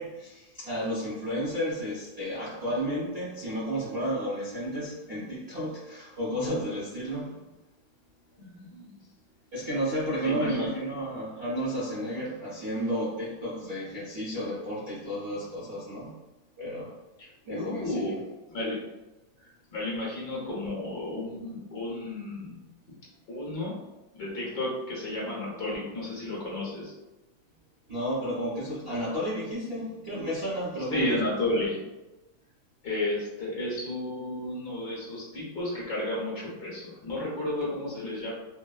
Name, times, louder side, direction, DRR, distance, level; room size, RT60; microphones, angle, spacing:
voice 1, 0.0-7.5 9.5-16.2 16.6-17.0 17.4-18.1 27.9-31.2, equal, 45° right, -11 dB, 0.8 m, -32 dB
voice 2, 8.4-8.9 10.2-10.7 17.2-18.2 18.5-18.8 19.7-22.6 23.3-23.8 24.1-26.9 30.9-31.8 32.8-38.3, left 1 dB, 55° left, -6 dB, 1.6 m, -32 dB
4.3 x 2.1 x 2.3 m, 1.1 s
omnidirectional pair, 2.2 m